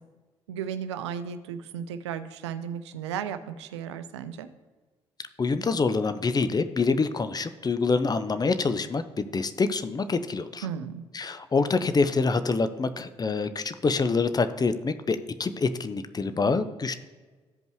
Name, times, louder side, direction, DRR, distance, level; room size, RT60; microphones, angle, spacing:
voice 1, 0.5-4.5 10.6-11.0, right 8 dB, 80° right, 10 dB, 0.4 m, -34 dB
voice 2, 5.4-10.7 11.1-17.0, left 4 dB, 30° left, 11 dB, 0.6 m, -26 dB
13.5 x 5.3 x 3.0 m, 1.3 s
figure-of-eight pair, 40°, 14 cm